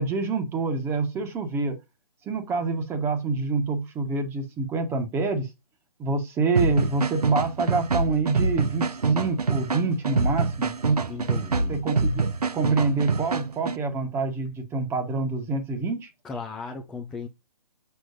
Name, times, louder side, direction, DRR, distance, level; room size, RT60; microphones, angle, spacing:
voice 1, 0.0-1.8 2.3-5.5 6.0-10.7 11.7-12.3 12.5-16.1, right 3 dB, 10° right, 1.3 m, -27 dB
sound 1, 6.6-13.8, right 4 dB, 85° right, 1.0 m, -25 dB
voice 2, 11.1-11.8 16.2-17.3, left 4 dB, 5° left, 0.3 m, -36 dB
6.7 x 5.9 x 2.6 m
hypercardioid pair, 145°, 19 cm